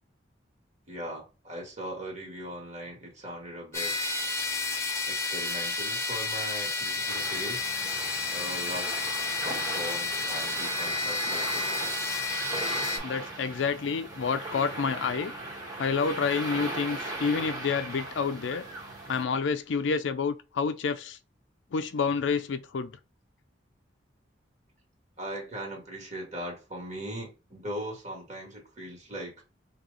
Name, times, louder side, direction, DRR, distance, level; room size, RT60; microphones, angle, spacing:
voice 1, 0.9-3.9 5.1-7.7 8.3-12.0 25.2-29.3, equal, 40° right, 1.7 m, -39 dB
sound 1, 3.7-13.0, left 3 dB, 15° left, 0.8 m, -31 dB
sound 2, 7.1-19.2, right 2 dB, 20° right, 1.2 m, -38 dB
voice 2, 13.0-15.3 15.8-18.6 19.1-21.2 21.7-22.9, left 5 dB, 70° left, 0.4 m, -29 dB
3.0 x 2.8 x 3.8 m
head